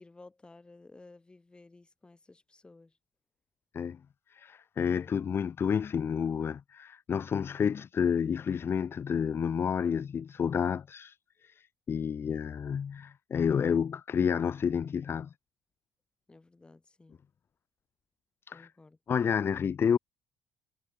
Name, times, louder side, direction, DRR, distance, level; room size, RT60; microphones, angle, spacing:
voice 1, 0.0-3.0 16.3-17.2 18.5-19.0, left 3 dB, 10° left, 7.3 m, -55 dB
voice 2, 4.3-11.2 11.4-15.3 18.5-18.7 19.1-20.0, left 7 dB, 30° left, 1.0 m, -30 dB
cardioid pair, 180°, 8 cm